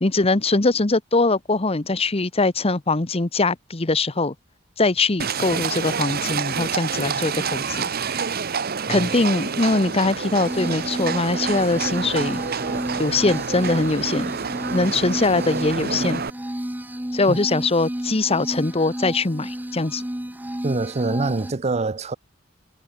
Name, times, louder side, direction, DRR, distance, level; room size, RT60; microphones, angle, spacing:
voice 1, 0.0-4.3 4.8-8.2 8.9-12.4 13.0-14.3 14.7-16.2 17.1-20.0, left 3 dB, 30° left, 1.0 m, -22 dB
Livestock farm animals working animals, 5.2-16.3, right 6 dB, 50° right, 1.1 m, -28 dB
sound 1, 10.5-21.5, right 1 dB, 10° right, 0.9 m, -32 dB
voice 2, 20.6-22.2, right 3 dB, 35° right, 0.6 m, -25 dB
head